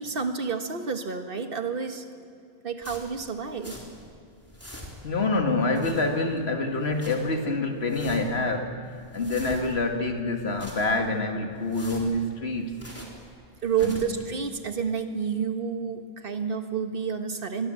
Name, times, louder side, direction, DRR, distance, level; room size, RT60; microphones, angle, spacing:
voice 1, 0.0-2.0 2.6-3.8 13.6-17.7, right 6 dB, 60° right, 6 dB, 1.7 m, -29 dB
sound 1, 2.8-4.1 4.4-5.2 5.6-6.4 6.7-7.4 7.8-8.4 8.8-9.9 10.3-11.2 11.6-13.3 13.6-14.2, equal, 15° left, 3.8 m, -44 dB
voice 2, 5.0-12.8 13.8-14.0, left 2 dB, 80° left, 4 dB, 2.2 m, -27 dB
23.5 x 22.5 x 7.7 m, 2.3 s
omnidirectional pair, 1.1 m